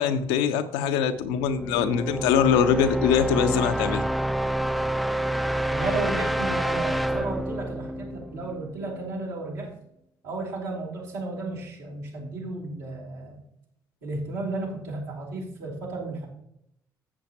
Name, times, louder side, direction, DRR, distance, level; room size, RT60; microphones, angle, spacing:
voice 1, 0.0-4.0, left 8 dB, 70° left, 10 dB, 0.8 m, -23 dB
sound 1, 1.2-9.0, right 1 dB, ahead, 0.3 m, -28 dB
voice 2, 5.7-9.7 10.2-13.4 14.0-16.3, right 2 dB, 70° right, -4 dB, 3.5 m, -33 dB
13.5 x 7.8 x 3.0 m, 0.76 s
figure-of-eight pair, 45°, 11 cm